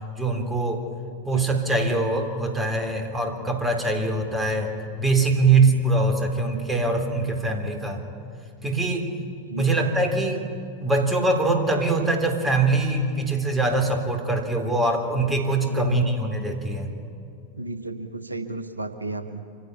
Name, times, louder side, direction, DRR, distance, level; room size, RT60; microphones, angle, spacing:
voice 1, 0.1-0.8 1.3-8.0 8.6-9.2 9.6-10.5 10.8-16.9, right 3 dB, 10° right, 4 dB, 3.4 m, -23 dB
voice 2, 9.4-9.9 15.7-16.1 17.6-19.4, right 2 dB, 80° right, 10 dB, 1.1 m, -33 dB
25.5 x 16.0 x 9.8 m, 2.6 s
figure-of-eight pair, 90°, 0 cm